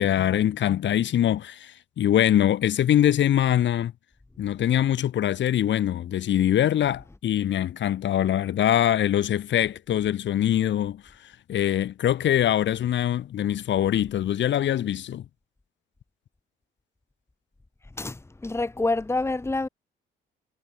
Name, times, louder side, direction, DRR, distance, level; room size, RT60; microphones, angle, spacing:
voice 1, 0.0-3.9 4.4-15.2, left 11 dB, 65° left, 2.0 m, -23 dB
voice 2, 18.0-19.7, left 2 dB, 15° left, 1.6 m, -27 dB
cardioid pair, 90°, 20 cm